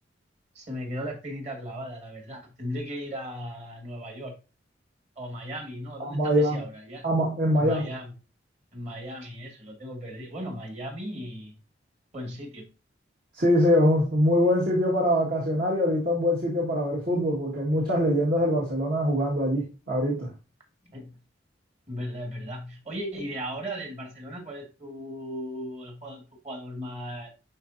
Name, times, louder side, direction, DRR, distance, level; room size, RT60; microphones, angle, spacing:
voice 1, 0.5-4.4 5.2-7.1 7.6-8.1 8.7-11.6 12.1-12.7 20.8-21.2 21.9-27.3, equal, 40° right, 2.1 m, -37 dB
voice 2, 6.1-6.6 7.0-7.9 13.3-20.3, equal, 55° right, 1.9 m, -23 dB
11.0 x 4.2 x 2.7 m
head